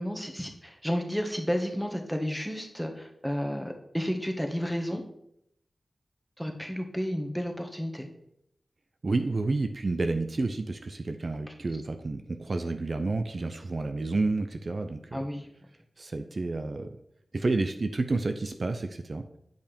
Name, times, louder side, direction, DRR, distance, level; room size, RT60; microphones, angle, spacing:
voice 1, 0.0-5.0 6.4-8.1 11.5-11.6 15.1-15.5, equal, ahead, 3 dB, 1.7 m, -32 dB
voice 2, 9.0-15.2 16.0-16.9 17.3-19.2, right 3 dB, 60° right, 7 dB, 0.6 m, -30 dB
9.2 x 5.5 x 5.2 m, 0.76 s
cardioid pair, 45°, 0 cm